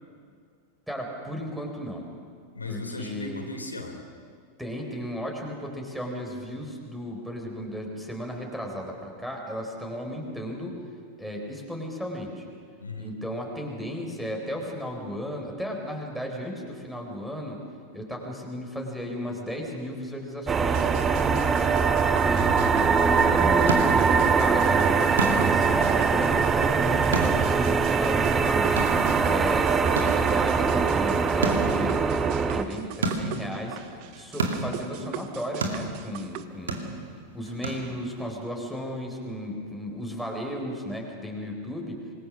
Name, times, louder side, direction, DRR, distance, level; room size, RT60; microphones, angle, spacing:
voice 1, 0.9-2.1 2.7-3.5 4.6-10.8 11.2-12.4 13.0-17.6 17.9-20.9 21.2-21.7 22.2-22.4 23.0-28.9 29.2-33.8 34.1-36.9 37.3-42.0, equal, ahead, 1 dB, 4.3 m, -35 dB
voice 2, 2.5-4.0 12.8-13.2 22.3-23.4, left 3 dB, 80° left, 2 dB, 3.2 m, -36 dB
sound 1, 20.5-32.6, right 5 dB, 20° right, 1.0 m, -22 dB
sound 2, 20.7-36.4, right 12 dB, 45° right, 1.0 m, -40 dB
sound 3, 23.6-38.3, right 3 dB, 70° right, 2.4 m, -34 dB
26.0 x 21.0 x 6.3 m, 2.2 s
figure-of-eight pair, 90°, 0 cm